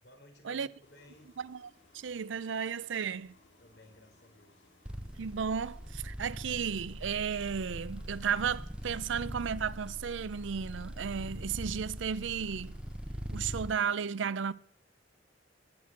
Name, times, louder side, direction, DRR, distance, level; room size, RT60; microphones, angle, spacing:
voice 1, 0.0-1.3 3.6-4.7, left 1 dB, 60° left, 3.8 m, -57 dB
sound 1, 0.8-13.9, left 2 dB, 85° left, 2.7 m, -64 dB
voice 2, 1.4-3.4 5.2-12.8 13.3-14.5, right 7 dB, 85° right, 0.5 m, -34 dB
sound 2, 4.8-13.8, equal, 5° right, 0.8 m, -42 dB
20.0 x 6.9 x 7.8 m
head